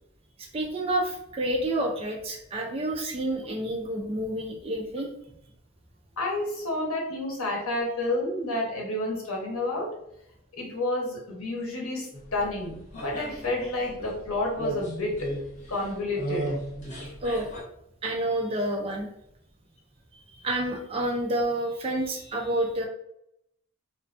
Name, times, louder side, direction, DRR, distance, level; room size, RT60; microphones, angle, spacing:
voice 1, 0.4-5.1 17.2-17.5 18.0-19.1 20.3-22.9, right 1 dB, 25° right, 1 dB, 0.3 m, -29 dB
voice 2, 6.2-9.9 10.5-15.3 15.7-16.5, left 1 dB, 75° left, -1 dB, 0.8 m, -30 dB
sound 1, 12.1-17.6, equal, 30° left, 0.6 m, -37 dB
2.4 x 2.2 x 2.4 m, 0.77 s
head